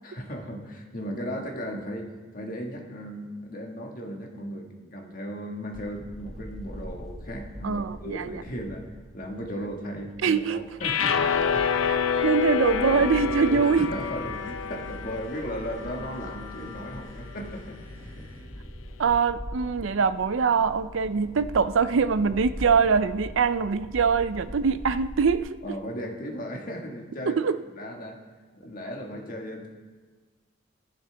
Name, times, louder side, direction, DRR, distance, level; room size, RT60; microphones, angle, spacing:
voice 1, 0.0-8.9 9.1-11.6 12.9-13.0 13.5-18.3 25.6-27.4 27.8-28.2 28.5-29.7, equal, 45° left, 1 dB, 1.7 m, -36 dB
sound 1, 5.7-25.4, equal, ahead, 1.1 m, -42 dB
voice 2, 7.6-8.4 10.2-10.6 11.9-13.9 19.0-25.6 27.3-27.6, right 5 dB, 70° right, 12 dB, 0.5 m, -23 dB
sound 2, 10.8-17.1, left 7 dB, 85° left, 0.6 m, -28 dB
sound 3, 10.8-18.4, left 1 dB, 60° left, 4.5 m, -49 dB
16.0 x 11.5 x 3.4 m, 1.4 s
head